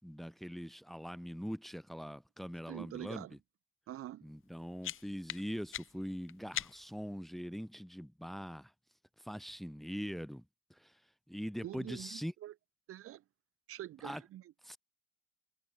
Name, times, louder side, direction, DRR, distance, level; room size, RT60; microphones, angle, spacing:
voice 1, 0.0-3.4 4.2-8.7 9.2-10.4 10.7-11.0 11.3-12.3 14.0-14.2 14.6-14.8, equal, ahead, 4.7 m, -42 dB
voice 2, 2.7-3.3 3.9-4.2 11.6-12.6 12.9-13.2 13.7-14.5, right 13 dB, 45° right, 6.2 m, -45 dB
sound 1, 4.4-7.1, left 12 dB, 45° left, 3.3 m, -44 dB
figure-of-eight pair, 70°, 30 cm